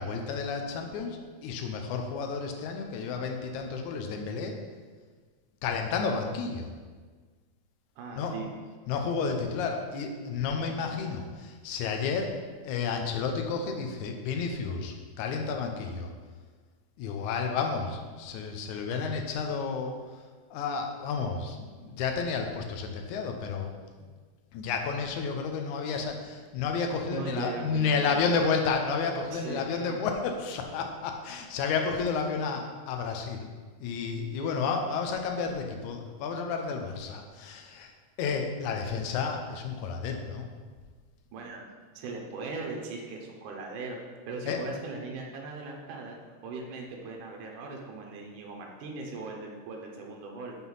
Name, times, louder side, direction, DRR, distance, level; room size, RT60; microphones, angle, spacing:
voice 1, 0.0-4.5 5.6-6.7 8.1-8.3 8.9-12.3 12.6-16.1 17.0-20.0 20.5-23.7 24.5-33.5 33.8-37.9 38.2-40.5 44.5-44.6, left 5 dB, 80° left, 3 dB, 2.2 m, -31 dB
voice 2, 8.0-8.5 24.0-24.1 27.1-28.5 29.3-30.0 34.4-34.5 41.3-41.6 41.9-44.0 44.3-46.2 46.4-50.6, right 3 dB, 85° right, 1 dB, 2.5 m, -39 dB
6.2 x 5.6 x 5.5 m, 1.5 s
omnidirectional pair, 3.5 m